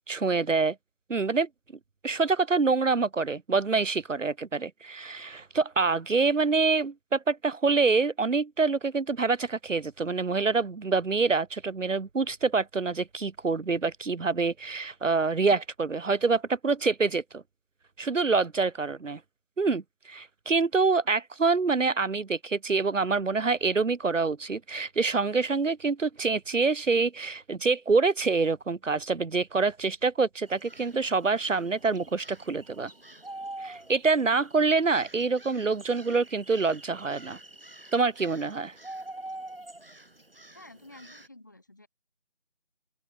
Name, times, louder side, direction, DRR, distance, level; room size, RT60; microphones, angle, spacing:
voice 1, 0.1-0.8 1.1-1.5 2.0-17.4 18.0-19.2 19.6-32.9 33.6-37.4 37.9-38.7, right 4 dB, 80° right, 0.9 m, -26 dB
sound 1, 30.5-41.3, right 2 dB, 50° right, 1.0 m, -46 dB
voice 2, 40.5-41.9, left 2 dB, 15° left, 4.5 m, -51 dB
open air
figure-of-eight pair, 175°, 37 cm